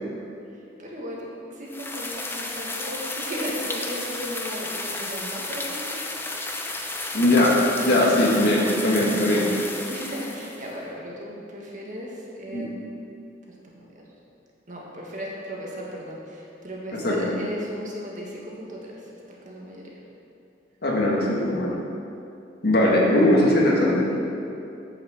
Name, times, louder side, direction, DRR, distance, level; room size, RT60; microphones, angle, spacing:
voice 1, 0.8-6.6 9.9-12.7 13.6-13.9 14.7-19.0 19.3-19.8, equal, 45° right, -3 dB, 1.8 m, -36 dB
sound 1, 1.7-10.7, left 2 dB, 10° left, 0.7 m, -32 dB
voice 2, 7.1-9.5 12.5-12.7 17.0-17.3 20.8-21.8 22.6-24.1, left 1 dB, 60° left, -3 dB, 1.8 m, -20 dB
8.7 x 6.4 x 6.4 m, 2.7 s
head